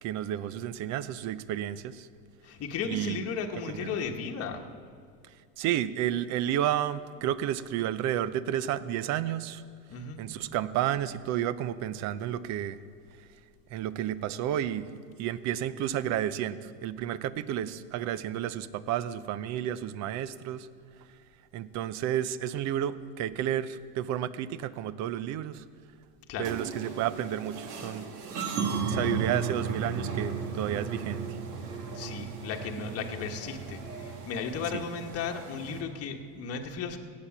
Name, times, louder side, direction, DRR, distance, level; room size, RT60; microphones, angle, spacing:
voice 1, 0.0-2.1 2.9-3.2 3.8-3.9 5.6-9.6 10.2-12.8 13.7-14.9 15.2-20.7 21.5-25.6 26.4-28.1 28.9-31.2 34.7-34.8, right 11 dB, 35° right, 16 dB, 0.6 m, -31 dB
voice 2, 2.4-4.6 9.9-10.3 26.3-26.5 31.9-37.0, left 6 dB, 30° left, 2 dB, 1.3 m, -35 dB
sound 1, 26.4-35.8, right 5 dB, 80° right, 2.3 m, -35 dB
17.0 x 8.5 x 7.3 m, 2.3 s
supercardioid pair, 130°, 47 cm